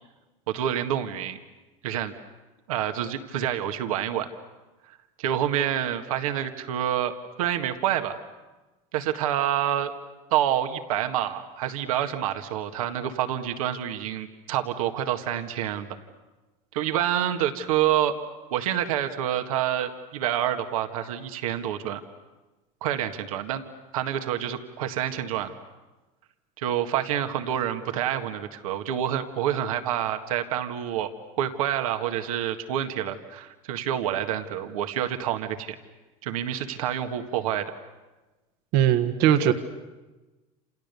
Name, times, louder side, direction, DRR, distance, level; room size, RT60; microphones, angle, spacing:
voice 1, 0.5-1.4 1.8-2.1 2.7-4.3 5.2-7.1 7.4-8.2 8.9-9.9 10.3-16.0 16.7-18.1 18.5-22.0 22.8-23.6 23.9-25.5 26.6-31.1 31.4-35.8 36.2-37.7, right 11 dB, 85° right, 7 dB, 1.8 m, -27 dB
voice 2, 38.7-39.5, right 10 dB, 65° right, 8 dB, 1.6 m, -20 dB
28.5 x 28.0 x 6.9 m, 1.2 s
supercardioid pair, 95°, 18 cm